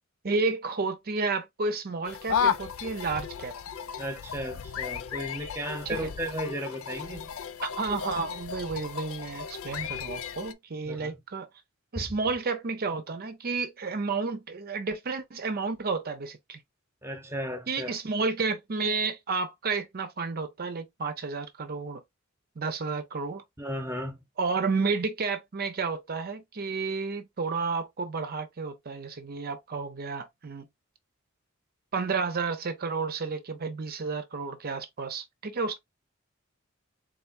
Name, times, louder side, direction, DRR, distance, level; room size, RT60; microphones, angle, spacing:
voice 1, 0.2-3.6 5.9-6.0 7.6-11.5 11.9-16.6 17.7-22.0 22.6-23.4 24.4-30.6 31.9-35.8, right 4 dB, 50° right, 0.6 m, -31 dB
sound 1, 2.0-10.5, left 7 dB, 90° left, 0.4 m, -34 dB
voice 2, 4.0-7.3 10.8-11.2 11.9-12.1 17.0-18.0 23.6-24.2, equal, 10° right, 1.0 m, -35 dB
3.8 x 3.3 x 2.6 m
head